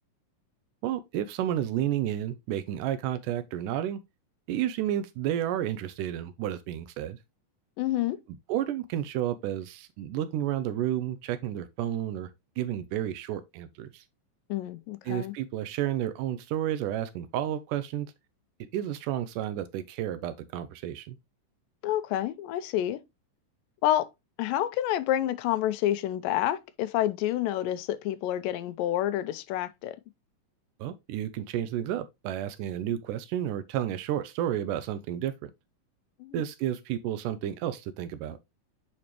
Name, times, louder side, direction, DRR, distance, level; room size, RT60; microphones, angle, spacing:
voice 1, 0.8-4.0 4.5-7.2 8.5-12.3 12.6-14.0 15.1-18.1 18.7-21.2 30.8-35.5 36.3-38.4, right 11 dB, 80° right, 2.0 m, -31 dB
voice 2, 7.8-8.2 14.5-15.3 21.8-23.0 23.8-24.1 24.4-30.0 36.2-36.5, left 13 dB, 90° left, 2.3 m, -28 dB
8.7 x 4.2 x 3.0 m
omnidirectional pair, 3.9 m